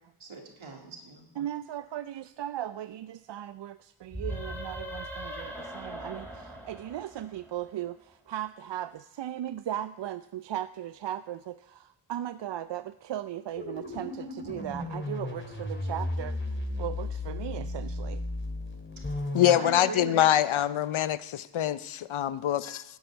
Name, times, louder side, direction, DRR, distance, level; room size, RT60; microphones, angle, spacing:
voice 1, 0.2-1.3 19.0-20.5, right 3 dB, 75° right, 1 dB, 2.9 m, -40 dB
voice 2, 1.4-18.2, right 12 dB, 60° right, 14 dB, 0.5 m, -37 dB
sound 1, 4.1-7.7, equal, 5° left, 4.4 m, -39 dB
sound 2, 13.5-19.6, left 2 dB, 25° left, 3.3 m, -35 dB
voice 3, 19.3-22.8, left 11 dB, 75° left, 16 dB, 0.7 m, -25 dB
12.0 x 8.0 x 8.8 m, 0.90 s
cardioid pair, 45°, 48 cm